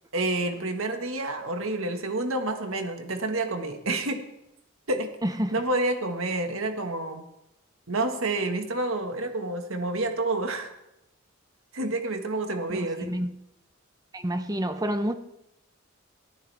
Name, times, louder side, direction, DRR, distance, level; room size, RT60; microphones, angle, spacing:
voice 1, 0.1-4.2 4.9-5.1 5.5-7.3 7.9-10.7 11.7-13.2, right 2 dB, 70° right, 1.8 m, -29 dB
voice 2, 5.2-5.6 12.7-13.3 14.1-15.1, equal, 15° right, 0.9 m, -29 dB
23.5 x 14.5 x 3.6 m
head